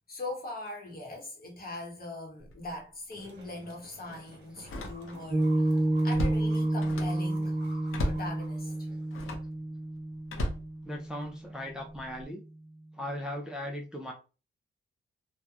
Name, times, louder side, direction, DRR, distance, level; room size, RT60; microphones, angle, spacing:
voice 1, 0.1-7.6 8.0-8.9, left 2 dB, 45° left, 1.0 m, -41 dB
Slam, 2.4-2.7 3.1-3.2 4.6-5.4 5.7-7.3 7.9-8.3 9.1-9.5 10.3-11.3 11.9-12.2, left 1 dB, 90° left, 0.7 m, -35 dB
sound 1, 3.1-9.1, right 1 dB, 60° right, 1.0 m, -52 dB
Piano, 5.3-12.0, right 1 dB, 25° right, 0.8 m, -30 dB
voice 2, 10.8-12.4 12.9-14.1, left 1 dB, 5° right, 0.4 m, -38 dB
2.9 x 2.1 x 2.3 m
wide cardioid pair, 120°, 21 cm